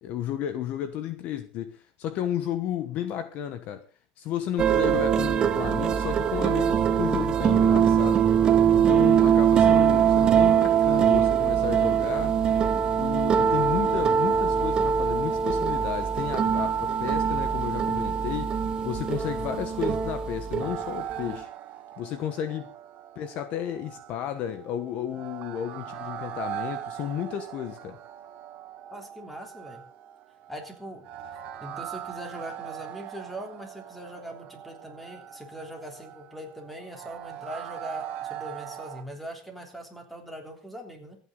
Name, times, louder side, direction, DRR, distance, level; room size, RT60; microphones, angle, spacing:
voice 1, 0.0-3.8 4.2-8.3 8.7-12.4 13.0-21.5 22.0-22.7 23.1-28.0, left 10 dB, 45° left, 1.2 m, -33 dB
sound 1, 4.6-21.4, right 8 dB, 25° right, 1.1 m, -22 dB
sound 2, 20.6-39.0, right 11 dB, 45° right, 2.0 m, -40 dB
voice 2, 28.9-29.8 30.5-31.0 31.6-41.2, equal, 5° left, 3.4 m, -41 dB
26.0 x 9.3 x 3.9 m
cardioid pair, 165°, 4 cm